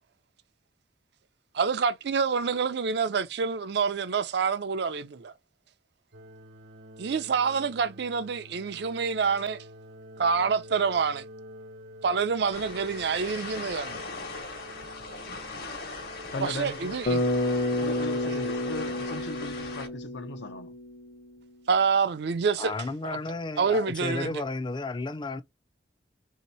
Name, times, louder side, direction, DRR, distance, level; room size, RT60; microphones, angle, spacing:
voice 1, 1.5-5.3 7.0-9.6 10.2-11.2 12.0-14.1 16.4-17.2 18.3-18.4 21.7-22.7 23.0-23.2 23.6-24.4, right 5 dB, 65° right, 0.4 m, -27 dB
sound 1, 6.1-19.1, equal, 90° right, 0.8 m, -47 dB
sound 2, 12.5-19.9, left 3 dB, 60° left, 1.2 m, -39 dB
voice 2, 16.3-17.0 17.8-20.7, left 2 dB, 75° left, 0.7 m, -38 dB
Bass guitar, 17.1-21.2, left 1 dB, 40° left, 0.9 m, -30 dB
voice 3, 22.6-25.4, left 3 dB, 25° left, 0.4 m, -33 dB
3.3 x 2.8 x 4.1 m
head